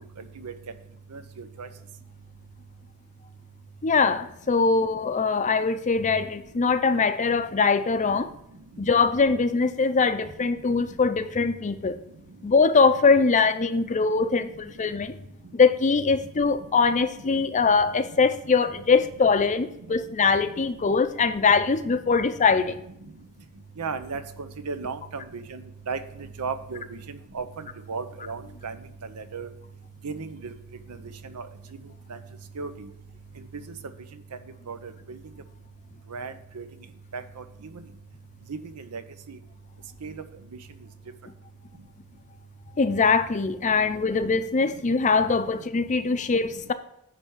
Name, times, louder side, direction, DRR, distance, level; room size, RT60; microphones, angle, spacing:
voice 1, 3.8-8.3 8.8-12.0 12.4-15.2 15.5-22.8 42.8-46.7, left 4 dB, 35° left, 11 dB, 0.5 m, -22 dB
voice 2, 23.8-25.0 25.3-25.6 25.9-26.0 26.4-26.8 27.3-27.4 27.9-28.8 29.2-29.5 30.0-30.5 31.3-31.4 32.6-32.7 34.7-34.9 36.1-36.6 37.1-37.2 38.5-39.0 39.3-39.4 40.0-40.2, right 5 dB, 85° right, 11 dB, 0.7 m, -34 dB
10.0 x 3.4 x 7.0 m, 0.76 s
head